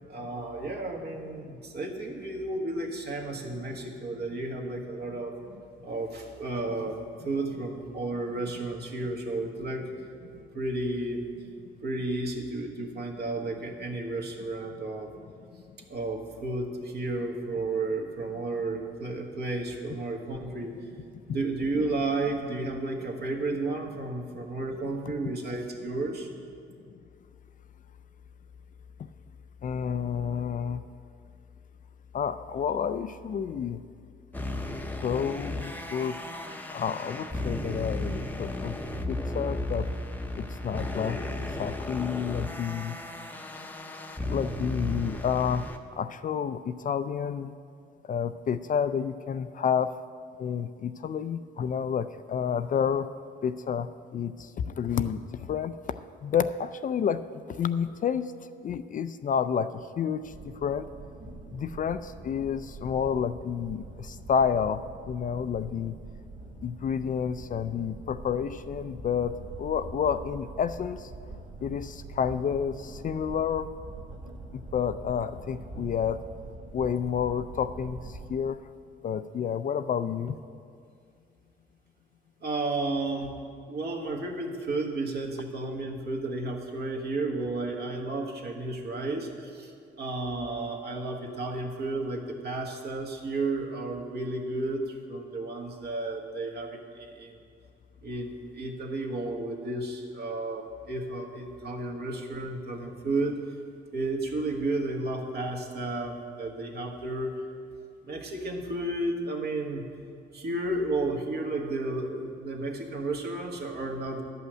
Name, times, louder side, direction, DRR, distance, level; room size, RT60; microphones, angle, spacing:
voice 1, 0.1-5.3 5.8-9.9 10.5-11.3 11.8-15.1 15.9-20.7 21.3-26.3 75.7-75.9 82.4-83.3 83.7-97.4 98.0-103.4 103.9-107.4 108.0-109.8 110.3-114.2, right 2 dB, 55° right, 1 dB, 1.5 m, -32 dB
voice 2, 29.6-30.8 32.1-33.8 35.0-36.1 36.7-38.8 39.1-39.9 40.3-41.2 41.6-43.0 44.3-45.6 46.0-47.5 48.1-49.9 50.4-53.1 53.4-53.9 54.1-54.3 54.7-55.2 55.5-55.7 56.2-57.2 57.6-58.3 58.6-59.7 60.0-60.2 60.6-60.9 61.5-64.8 65.1-65.9 66.6-69.3 69.6-71.0 71.6-73.7 74.5-76.2 76.7-78.0 78.3-78.6 79.0-80.3, left 7 dB, 40° left, 11 dB, 0.4 m, -29 dB
sound 1, 34.3-45.8, left 1 dB, 10° left, 0.7 m, -34 dB
sound 2, 60.2-78.4, right 2 dB, 70° right, 1.9 m, -44 dB
11.0 x 5.6 x 7.8 m, 2.3 s
cardioid pair, 90°, 20 cm